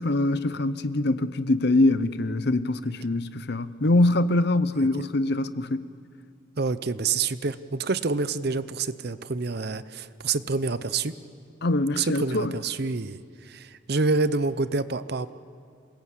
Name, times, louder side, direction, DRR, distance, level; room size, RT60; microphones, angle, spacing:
voice 1, 0.0-5.9 11.6-12.5, left 2 dB, 55° left, 0.8 m, -24 dB
voice 2, 6.6-11.1 11.9-15.3, right 4 dB, 50° right, 0.7 m, -27 dB
27.5 x 20.0 x 8.5 m
head